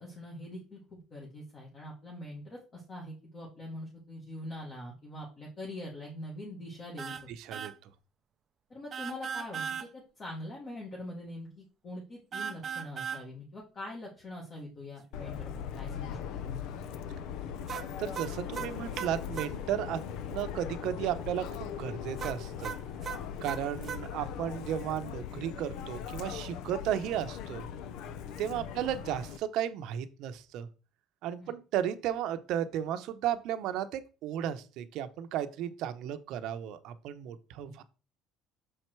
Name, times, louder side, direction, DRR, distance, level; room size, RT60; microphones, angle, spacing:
voice 1, 0.0-7.2 8.7-16.6 28.5-28.6 31.4-31.5 37.6-37.8, left 1 dB, 35° left, -3 dB, 1.9 m, -43 dB
sound 1, 7.0-7.2 7.5-7.7 8.9-9.9 12.3-13.2 17.7-19.5 22.2-24.0, right 7 dB, 35° right, 0.5 m, -38 dB
voice 2, 7.4-7.7 18.0-20.0 20.3-22.7 23.4-27.6 28.4-30.7 31.2-37.8, right 10 dB, 65° right, 10 dB, 0.8 m, -34 dB
Subway metro underground, 15.1-29.4, left 8 dB, 70° left, 0.6 m, -40 dB
6.4 x 4.5 x 4.6 m, 0.34 s
cardioid pair, 135°, 0 cm